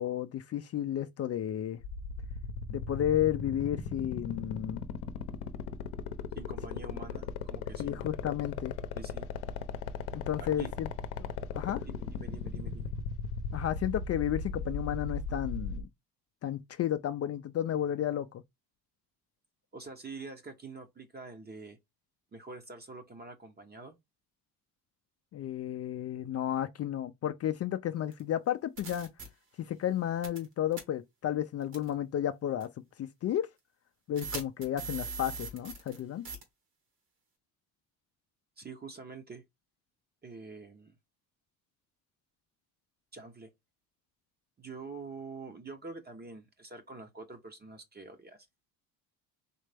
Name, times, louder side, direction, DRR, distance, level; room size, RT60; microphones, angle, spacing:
voice 1, 0.0-1.8 2.7-4.8 7.8-8.7 10.1-10.9 11.2-11.3 11.5-11.8 13.5-15.9 16.4-18.4 25.3-29.1 29.6-32.7 33.0-33.5 34.1-36.3, left 11 dB, 40° left, 0.4 m, -32 dB
sound 1, 1.8-15.8, left 7 dB, 75° left, 0.7 m, -36 dB
voice 2, 6.3-8.1 8.9-9.3 10.4-10.7 11.8-12.9 19.7-21.8 22.3-24.0 38.6-39.4 40.2-41.0 43.1-43.5 44.6-48.5, right 3 dB, 25° right, 0.9 m, -46 dB
sound 2, 28.1-28.2 28.8-29.3 30.2-30.5 30.7-30.8 31.7-31.9 32.6-32.7 34.2-36.0 36.2-36.4, right 4 dB, 65° right, 2.0 m, -40 dB
4.1 x 3.2 x 3.4 m
cardioid pair, 100°, 40 cm